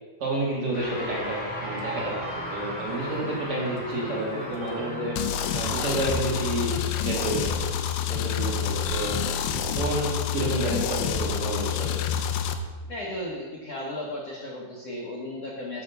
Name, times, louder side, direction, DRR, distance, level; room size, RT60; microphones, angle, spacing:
voice 1, 0.2-5.2 5.5-6.8 7.0-7.7 8.1-9.2 9.8-12.0, right 2 dB, 50° right, -4 dB, 2.0 m, -30 dB
sound 1, 0.7-10.2, left 1 dB, 40° left, 1.0 m, -38 dB
sound 2, 0.9-1.0 1.5-5.4 5.6-7.6, right 4 dB, 80° right, 3.3 m, -41 dB
sound 3, 5.2-12.5, left 8 dB, 80° left, 2.6 m, -28 dB
voice 2, 12.9-15.8, left 1 dB, 60° left, -3 dB, 1.6 m, -35 dB
12.5 x 4.9 x 6.9 m, 1.4 s
omnidirectional pair, 4.5 m